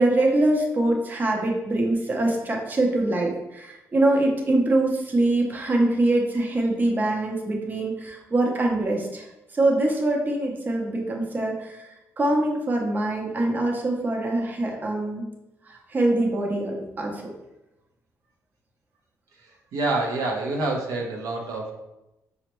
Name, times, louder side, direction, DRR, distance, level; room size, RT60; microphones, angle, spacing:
voice 1, 0.0-9.3 9.5-15.3 15.7-17.2, right 2 dB, 30° right, 0 dB, 0.6 m, -24 dB
voice 2, 19.4-21.7, right 2 dB, 85° right, 0 dB, 0.6 m, -27 dB
5.2 x 2.1 x 3.0 m, 0.93 s
cardioid pair, 105°, 6 cm